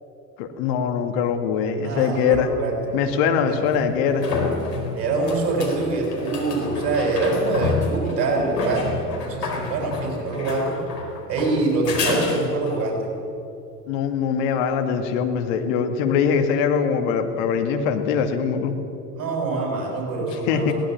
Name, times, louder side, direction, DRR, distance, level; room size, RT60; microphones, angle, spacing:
voice 1, 0.4-2.5 2.9-4.3 13.9-18.8 20.5-20.7, left 7 dB, 55° left, 5 dB, 2.3 m, -22 dB
voice 2, 1.8-3.0 3.4-3.6 4.9-10.7 11.3-13.1 19.1-20.7, right 3 dB, 60° right, 0 dB, 6.1 m, -24 dB
sound 1, 2.3-2.4 3.7-12.8 16.3-16.4, left 4 dB, 75° left, 4.5 m, -29 dB
21.5 x 18.0 x 7.3 m, 2.8 s
figure-of-eight pair, 80°, 49 cm